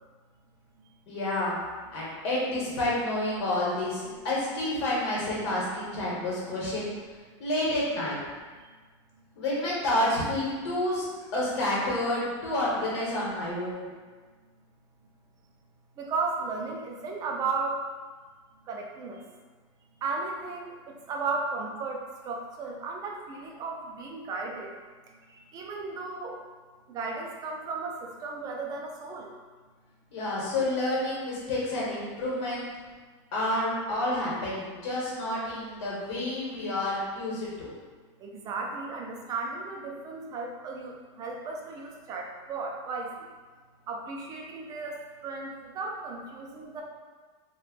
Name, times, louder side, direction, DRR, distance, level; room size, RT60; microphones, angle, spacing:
voice 1, 1.1-1.6 1.9-6.9 7.4-8.2 9.4-11.1 11.3-13.9 30.1-32.7 33.3-37.7, left 1 dB, 65° left, -6 dB, 1.2 m, -29 dB
voice 2, 16.0-17.8 18.7-19.2 20.0-22.0 22.3-24.7 25.5-26.4 26.9-29.3 38.2-43.1 43.9-45.0 45.2-46.8, right 4 dB, 25° right, 0 dB, 0.3 m, -34 dB
3.2 x 2.2 x 2.4 m, 1.4 s
supercardioid pair, 150°, 16 cm